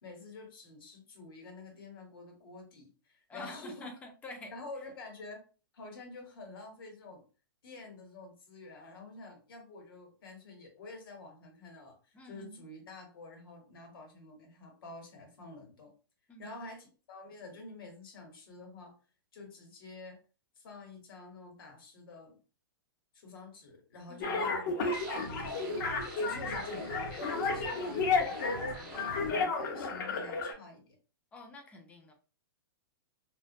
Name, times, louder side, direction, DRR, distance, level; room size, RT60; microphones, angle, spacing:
voice 1, 0.0-4.0 4.5-5.4 5.7-7.2 7.6-15.9 16.4-18.9 19.3-20.2 20.6-22.4 23.1-31.0, left 3 dB, 70° left, 2 dB, 1.0 m, -49 dB
voice 2, 3.3-4.5 12.1-12.6 16.3-16.6 24.1-24.5 26.2-26.7 31.3-32.1, left 2 dB, 10° left, 3 dB, 0.5 m, -48 dB
sound 1, 24.2-30.5, left 4 dB, 50° left, 0.6 m, -32 dB
sound 2, 24.9-29.3, right 2 dB, 30° right, 0.6 m, -45 dB
2.3 x 2.1 x 2.6 m, 0.36 s
hypercardioid pair, 150°, 12 cm